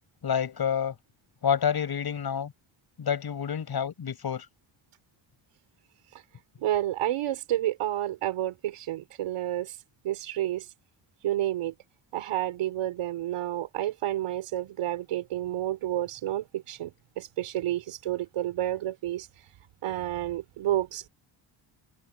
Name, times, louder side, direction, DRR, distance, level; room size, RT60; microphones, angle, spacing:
voice 1, 0.2-0.9 1.4-2.5 3.0-4.4, left 8 dB, 50° left, 6.6 m, -28 dB
voice 2, 6.6-9.7 10.0-10.7 11.2-11.7 12.1-19.3 19.8-21.1, right 13 dB, 90° right, 4.8 m, -30 dB
cardioid pair, 110°, 49 cm